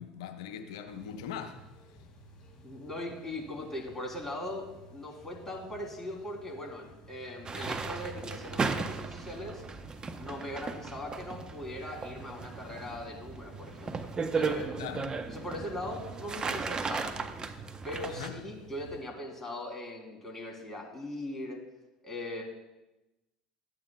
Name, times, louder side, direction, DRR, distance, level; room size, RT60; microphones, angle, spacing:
voice 1, 0.0-1.6 7.5-7.8 14.8-15.0 18.0-18.4, left 8 dB, 75° left, 5 dB, 0.8 m, -40 dB
sound 1, 0.9-19.0, equal, 35° left, 2.8 m, -55 dB
voice 2, 2.6-4.6 4.9-9.6 10.2-14.1 14.3-14.8 15.3-17.3 17.8-21.6 22.0-22.4, left 1 dB, 15° left, -1 dB, 2.9 m, -40 dB
sound 2, 7.5-18.3, right 4 dB, 30° right, 0.7 m, -36 dB
13.5 x 8.8 x 2.2 m, 1.0 s
hypercardioid pair, 70°, 3 cm